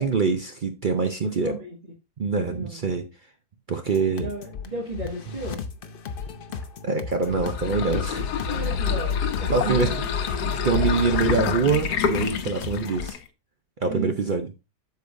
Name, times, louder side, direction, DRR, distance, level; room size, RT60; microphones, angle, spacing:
voice 1, 0.0-1.6 2.2-3.0 3.7-4.3 6.8-8.3 9.5-9.9 10.6-13.2 13.8-14.5, right 4 dB, 55° right, 0.5 m, -24 dB
voice 2, 1.2-1.8 2.5-2.9 4.0-5.6 8.5-9.9 13.8-14.1, right 2 dB, 30° right, 2.1 m, -34 dB
sound 1, 3.9-13.1, left 6 dB, 50° left, 0.7 m, -36 dB
sound 2, 7.2-13.3, left 7 dB, 80° left, 1.4 m, -27 dB
8.2 x 6.8 x 2.6 m
omnidirectional pair, 1.7 m